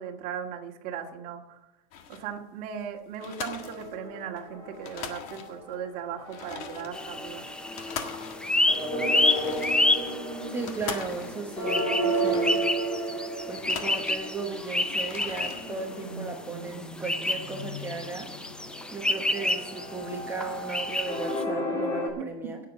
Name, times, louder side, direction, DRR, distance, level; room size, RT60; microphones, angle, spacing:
voice 1, 0.0-1.6 2.1-7.5 22.2-22.3, right 8 dB, 45° right, 1 dB, 1.9 m, -37 dB
sound 1, 1.9-2.3 2.8-2.9 3.1-4.4 4.7-5.8 6.2-13.0 13.4-14.6 14.9-15.6, left 7 dB, 60° left, 1.6 m, -41 dB
sound 2, 3.5-5.7 6.0-22.1, right 1 dB, 20° left, 3.1 m, -34 dB
sound 3, 6.9-21.4, left 2 dB, 5° left, 0.4 m, -29 dB
voice 2, 10.5-12.6 13.5-18.3 18.9-22.6, right 4 dB, 10° right, 1 dB, 0.9 m, -36 dB
17.0 x 7.1 x 5.2 m, 0.96 s
supercardioid pair, 165°, 20 cm